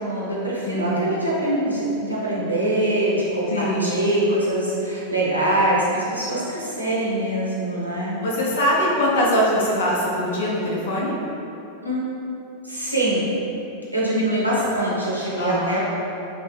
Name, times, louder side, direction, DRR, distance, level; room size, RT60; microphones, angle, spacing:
voice 1, 0.0-8.2 11.8-12.0 12.6-13.3 13.9-15.8, right 1 dB, 85° right, -7 dB, 0.7 m, -23 dB
voice 2, 0.7-1.1 3.5-3.9 8.2-11.2 15.4-15.8, equal, 60° left, -4 dB, 0.5 m, -22 dB
3.2 x 2.7 x 3.2 m, 2.9 s
figure-of-eight pair, 90°, 0 cm